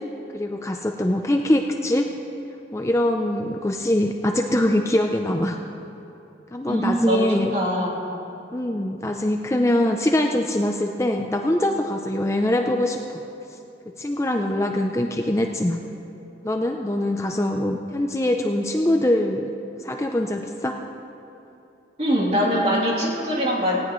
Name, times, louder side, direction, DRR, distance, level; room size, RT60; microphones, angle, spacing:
voice 1, 0.3-2.1 2.7-5.6 6.5-7.5 8.5-13.0 14.0-15.8 16.4-19.5 19.8-20.8, left 1 dB, 15° left, 3 dB, 0.5 m, -23 dB
voice 2, 6.7-8.0 22.0-23.8, equal, 35° right, -5 dB, 3.1 m, -23 dB
19.0 x 17.0 x 3.1 m, 2.9 s
head